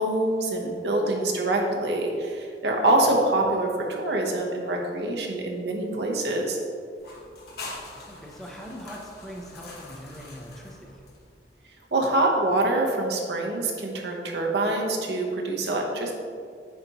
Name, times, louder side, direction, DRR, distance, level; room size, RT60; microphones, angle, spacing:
voice 1, 0.0-6.6 11.9-16.1, right 2 dB, 65° right, 0 dB, 0.9 m, -25 dB
sound 1, 7.0-11.5, left 2 dB, 60° left, 1.1 m, -43 dB
voice 2, 8.0-11.0, equal, ahead, -2 dB, 0.6 m, -41 dB
9.2 x 4.2 x 2.9 m, 2.2 s
head